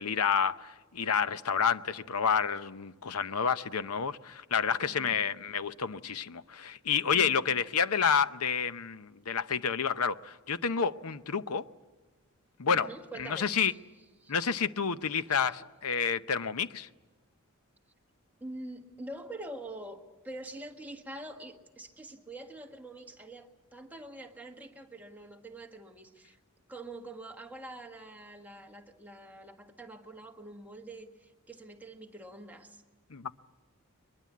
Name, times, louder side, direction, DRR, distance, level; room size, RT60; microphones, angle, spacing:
voice 1, 0.0-11.6 12.6-12.9 13.3-13.7 14.3-16.9 33.1-33.4, left 6 dB, 90° left, 0.7 m, -29 dB
voice 2, 4.8-5.3 7.1-7.5 12.7-13.8 14.2-14.3 15.3-15.6 18.4-26.4 26.7-32.8, right 1 dB, 10° right, 1.6 m, -45 dB
22.5 x 22.0 x 8.5 m
head